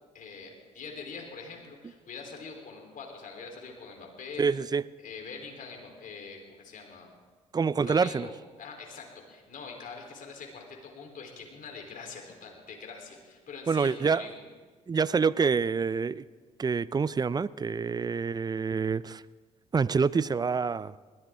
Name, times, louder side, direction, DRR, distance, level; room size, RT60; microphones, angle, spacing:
voice 1, 0.1-4.4 5.0-7.1 7.8-8.3 8.6-14.4, left 5 dB, 55° left, 3.8 m, -44 dB
voice 2, 4.4-4.8 7.5-8.3 13.7-14.3 14.9-16.2 16.6-19.2 19.7-20.9, right 5 dB, 25° right, 0.5 m, -26 dB
20.5 x 14.5 x 3.7 m
hypercardioid pair, 55°, 17 cm